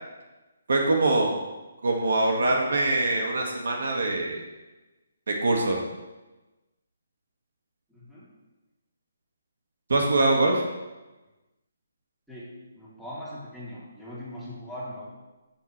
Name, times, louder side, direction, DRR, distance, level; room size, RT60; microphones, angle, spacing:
voice 1, 0.7-1.3 1.8-4.4 5.3-5.8 9.9-10.6, right 2 dB, 70° right, 0 dB, 1.9 m, -23 dB
voice 2, 7.9-8.3 12.3-15.0, equal, 5° right, -10 dB, 3.2 m, -40 dB
13.5 x 7.2 x 3.3 m, 1.1 s
hypercardioid pair, 155°, 0 cm